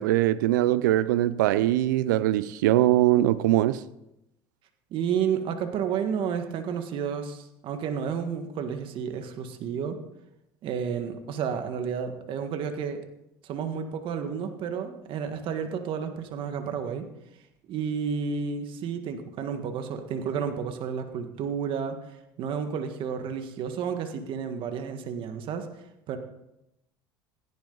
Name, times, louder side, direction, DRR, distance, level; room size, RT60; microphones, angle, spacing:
voice 1, 0.0-3.8, right 14 dB, 90° right, 0.6 m, -22 dB
voice 2, 4.9-10.0 10.6-13.0 13.4-17.1 17.7-25.7 26.1-26.2, right 7 dB, 60° right, 1.7 m, -31 dB
16.5 x 11.0 x 4.0 m
supercardioid pair, 90°, 10 cm